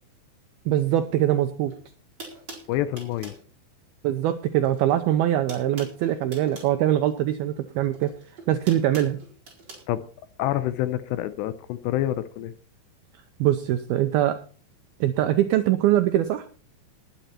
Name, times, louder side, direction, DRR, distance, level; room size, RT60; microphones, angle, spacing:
voice 1, 0.7-1.7 4.0-8.1 8.5-9.2 13.4-14.4 15.0-16.5, right 12 dB, 90° right, 8 dB, 2.2 m, -22 dB
sound 1, 1.7-1.8 2.2-3.4 4.6-4.9 5.2-6.7 7.9-9.8, right 3 dB, 25° right, 4.4 m, -43 dB
voice 2, 2.7-3.3 9.9-10.0 10.4-12.5, left 13 dB, 80° left, 14 dB, 2.7 m, -27 dB
19.0 x 9.1 x 4.4 m, 0.40 s
omnidirectional pair, 5.3 m